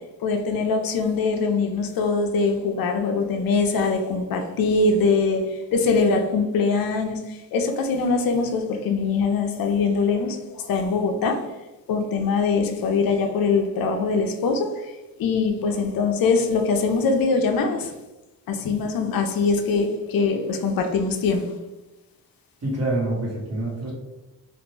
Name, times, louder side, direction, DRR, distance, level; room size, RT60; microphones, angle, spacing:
voice 1, 0.2-11.4 11.9-14.9 15.2-17.9 18.5-21.4, left 4 dB, 60° left, 5 dB, 0.6 m, -22 dB
voice 2, 22.6-23.9, right 1 dB, 40° right, -4 dB, 1.3 m, -26 dB
2.5 x 2.1 x 3.1 m, 1.0 s
supercardioid pair, 60°, 40 cm